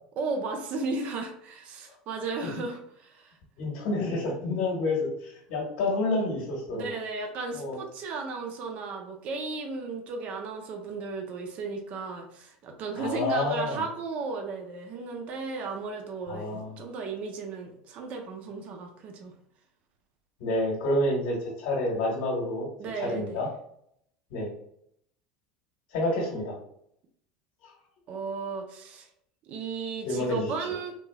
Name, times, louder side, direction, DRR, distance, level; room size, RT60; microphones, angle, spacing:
voice 1, 0.2-3.3 6.7-19.3 22.8-23.4 28.1-29.1 29.5-31.0, right 4 dB, 50° right, 3 dB, 0.7 m, -35 dB
voice 2, 3.6-6.9 7.6-7.8 13.0-13.8 16.3-16.7 20.4-22.7 23.0-23.5 24.3-24.5 25.9-26.6 27.6-27.7 30.0-30.8, left 2 dB, 70° left, -3 dB, 1.3 m, -29 dB
3.6 x 2.7 x 2.3 m, 0.71 s
hypercardioid pair, 95°, 3 cm